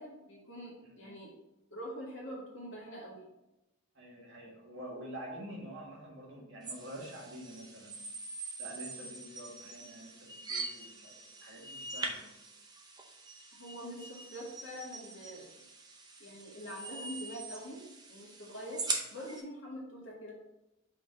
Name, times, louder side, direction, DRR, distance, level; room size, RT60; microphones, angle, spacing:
voice 1, 0.0-1.3 1.7-3.3 13.5-15.5 16.2-17.8 18.1-20.3, equal, 60° left, -4 dB, 1.8 m, -44 dB
voice 2, 0.8-1.1 4.0-8.0 8.6-12.4, right 1 dB, 60° right, -2 dB, 1.6 m, -47 dB
sound 1, 6.6-19.4, right 3 dB, 20° right, 0.6 m, -43 dB
5.1 x 3.9 x 4.8 m, 0.92 s
head